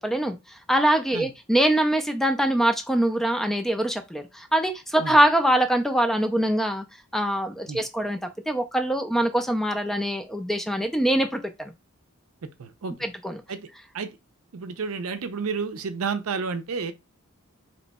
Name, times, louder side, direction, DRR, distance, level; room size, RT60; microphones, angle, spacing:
voice 1, 0.0-6.8 7.1-8.2 8.5-11.7 13.0-13.4, right 1 dB, ahead, 0.3 m, -23 dB
voice 2, 12.4-12.9 13.5-13.7 13.9-14.2 14.5-16.9, right 5 dB, 75° right, 0.5 m, -31 dB
2.9 x 2.2 x 4.0 m
head